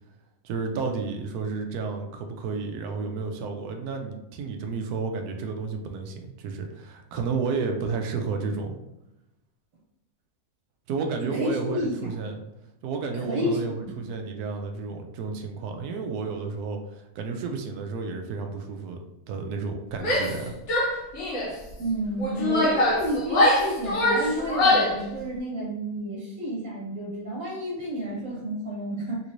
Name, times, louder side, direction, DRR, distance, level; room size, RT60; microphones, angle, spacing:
voice 1, 0.4-8.8 10.9-12.4 12.8-20.5, right 4 dB, 90° right, 4 dB, 1.1 m, -31 dB
voice 2, 11.2-12.1 13.1-13.9 21.8-29.2, equal, 60° right, -6 dB, 1.7 m, -30 dB
Female speech woman speaking / Yell, 20.0-20.4 20.7-21.5 22.2-25.0, left 1 dB, 65° left, 1.2 m, -23 dB
3.4 x 3.0 x 2.5 m, 0.93 s
omnidirectional pair, 1.6 m